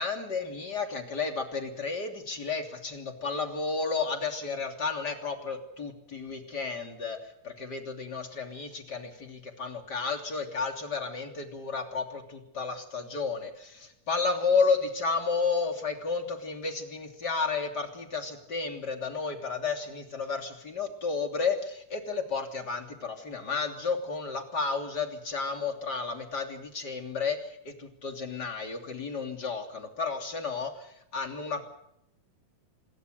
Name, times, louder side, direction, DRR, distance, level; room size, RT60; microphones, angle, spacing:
voice 1, 0.0-31.6, left 4 dB, 30° left, 4 dB, 3.4 m, -32 dB
27.0 x 21.5 x 6.7 m, 0.78 s
omnidirectional pair, 3.7 m